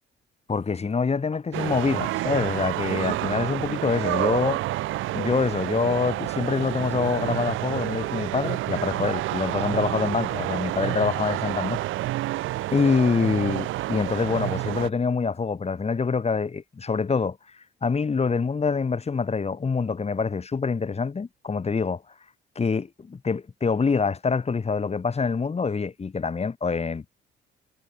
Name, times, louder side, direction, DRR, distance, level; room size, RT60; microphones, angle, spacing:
voice 1, 0.5-4.6 5.1-11.8 12.7-17.4 17.8-22.0 22.6-27.2, left 5 dB, 30° left, 2.3 m, -25 dB
sound 1, 1.5-14.9, right 16 dB, 85° right, 0.8 m, -29 dB
cardioid pair, 90°, 20 cm